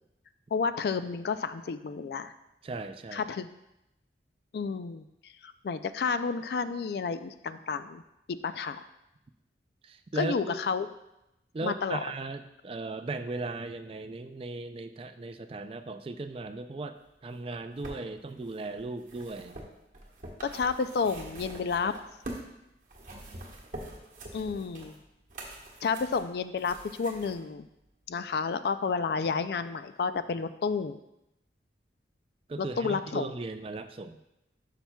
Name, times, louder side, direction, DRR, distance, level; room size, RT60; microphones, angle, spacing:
voice 1, 0.5-2.3 3.1-3.5 4.5-5.1 5.4-8.0 8.3-8.8 10.2-10.9 11.6-12.0 20.4-21.9 24.3-25.0 25.8-27.7 28.1-31.0 32.8-33.3, left 5 dB, 60° left, 12 dB, 0.3 m, -31 dB
voice 2, 2.6-3.3 9.8-10.6 11.5-19.6 23.1-23.4 32.5-34.2, right 3 dB, 30° right, 9 dB, 0.3 m, -37 dB
sound 1, 17.4-22.5 22.8-27.4 28.2-28.3, right 1 dB, 45° right, 1.2 m, -45 dB
11.5 x 5.8 x 2.3 m, 0.88 s
head